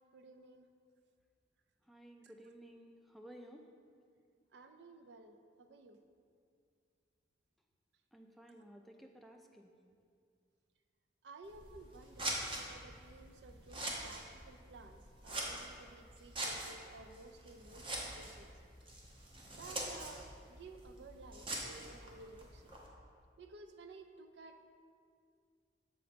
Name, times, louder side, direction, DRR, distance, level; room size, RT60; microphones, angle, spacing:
voice 1, 0.1-0.7 4.5-6.0 11.2-18.5 19.5-22.8 23.4-24.6, right 3 dB, 70° right, 7 dB, 0.4 m, -55 dB
voice 2, 1.8-3.7 8.1-9.7, right 1 dB, ahead, 2 dB, 0.4 m, -55 dB
Scissors, 11.4-22.9, right 1 dB, 30° right, 0.8 m, -44 dB
6.9 x 3.9 x 5.1 m, 2.3 s
head